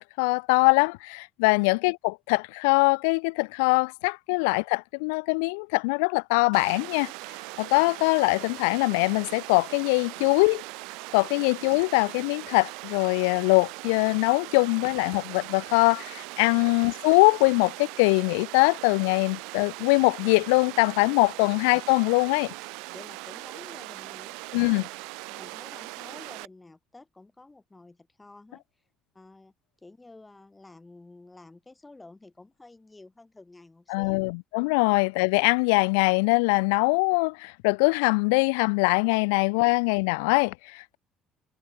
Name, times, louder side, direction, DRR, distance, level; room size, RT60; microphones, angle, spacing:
voice 1, 0.0-7.1 7.6-10.6 11.1-22.5 24.5-24.8 33.9-41.0, left 31 dB, 80° left, 0.4 m, -23 dB
Water, 6.5-26.5, right 29 dB, 75° right, 1.5 m, -40 dB
voice 2, 22.9-24.4 24.7-24.8 25.2-28.6 29.1-29.5 29.8-34.2, left 2 dB, 15° left, 6.4 m, -50 dB
hypercardioid pair, 60°, 0 cm